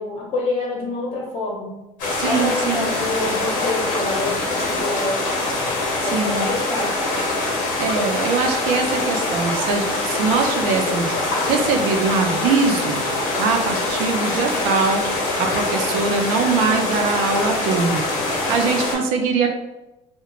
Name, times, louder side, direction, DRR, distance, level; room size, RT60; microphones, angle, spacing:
voice 1, 0.0-1.8 2.2-5.2 6.0-7.2, left 2 dB, 45° left, -3 dB, 0.9 m, -27 dB
sound 1, 2.0-19.0, left 2 dB, 75° left, 0.8 m, -23 dB
voice 2, 2.1-2.9 6.0-6.5 7.8-13.0 13.4-18.0 18.5-19.5, right 4 dB, 85° right, 3 dB, 0.5 m, -22 dB
2.9 x 2.1 x 2.4 m, 0.95 s
cardioid pair, 135°, 14 cm